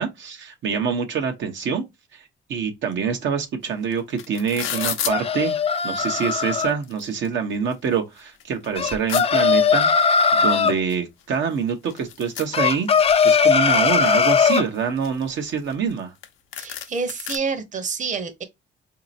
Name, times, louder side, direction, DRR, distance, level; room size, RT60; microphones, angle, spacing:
voice 1, 0.0-1.8 2.1-2.2 2.5-5.6 5.8-9.9 10.3-12.9 13.2-16.1, right 6 dB, 70° right, 0.9 m, -25 dB
sound 1, 3.6-3.7 3.9-5.1 6.0-6.1 6.5-7.3 7.7-7.8 8.2-9.3 10.4-10.5 10.9-11.0 11.2-13.2 13.6-14.2 14.7-16.3 16.5-17.4, left 10 dB, 90° left, 0.7 m, -32 dB
sound 2, 4.7-6.7 8.8-10.8 12.5-14.7, left 6 dB, 30° left, 0.4 m, -19 dB
voice 2, 16.6-18.4, right 5 dB, 40° right, 1.0 m, -28 dB
3.9 x 2.8 x 2.5 m
cardioid pair, 90°, 20 cm